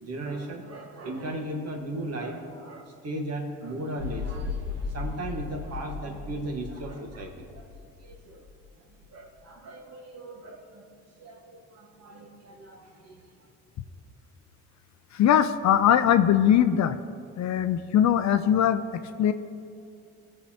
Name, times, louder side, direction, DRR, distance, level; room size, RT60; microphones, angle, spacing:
voice 1, 0.0-7.7 8.0-8.5 9.1-10.9 11.2-13.5, right 1 dB, 45° right, 2 dB, 1.6 m, -37 dB
sound 1, 4.0-8.5, left 5 dB, 70° right, 2.6 m, -36 dB
voice 2, 15.1-17.0 17.4-19.3, left 10 dB, 50° left, 10 dB, 0.5 m, -21 dB
16.5 x 6.7 x 2.9 m, 2.4 s
supercardioid pair, 70°, 35 cm